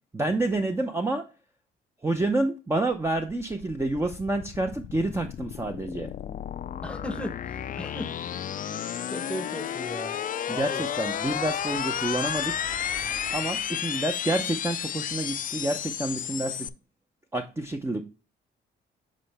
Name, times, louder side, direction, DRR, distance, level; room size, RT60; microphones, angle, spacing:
voice 1, 0.1-1.3 2.0-6.1 10.5-12.5 13.3-16.7 17.3-18.0, right 2 dB, 15° right, 0.6 m, -28 dB
sound 1, 2.9-16.7, left 9 dB, 45° left, 0.4 m, -32 dB
voice 2, 6.8-8.2 8.6-8.7 9.1-10.2 10.5-10.8, equal, 5° left, 0.9 m, -37 dB
sound 2, 10.9-13.8, right 2 dB, 30° right, 1.3 m, -47 dB
7.4 x 4.3 x 3.4 m
cardioid pair, 90°, 20 cm